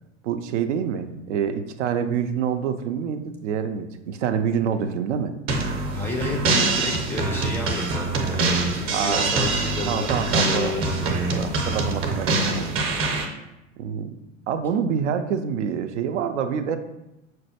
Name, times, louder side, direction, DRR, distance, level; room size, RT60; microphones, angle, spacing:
voice 1, 0.2-5.3 8.9-9.3 9.9-10.8 11.3-12.8 13.8-14.1 14.5-16.8, right 7 dB, 65° right, 8 dB, 0.5 m, -26 dB
sound 1, 5.5-13.2, right 3 dB, 35° right, 0.7 m, -24 dB
voice 2, 5.9-11.1, left 2 dB, 5° left, -1 dB, 0.4 m, -31 dB
5.8 x 2.2 x 2.7 m, 0.92 s
hypercardioid pair, 95°, 39 cm